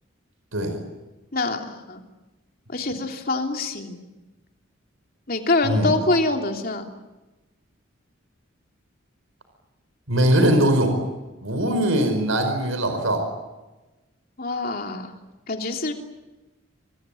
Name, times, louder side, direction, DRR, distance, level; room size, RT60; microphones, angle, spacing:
voice 1, 1.3-2.0 2.7-4.0 5.3-6.9 14.4-15.1 15.5-15.9, left 2 dB, 45° left, 3 dB, 3.1 m, -25 dB
voice 2, 10.1-10.9 11.4-13.2, right 1 dB, 80° right, 6 dB, 5.2 m, -21 dB
29.0 x 22.0 x 9.1 m, 1.1 s
head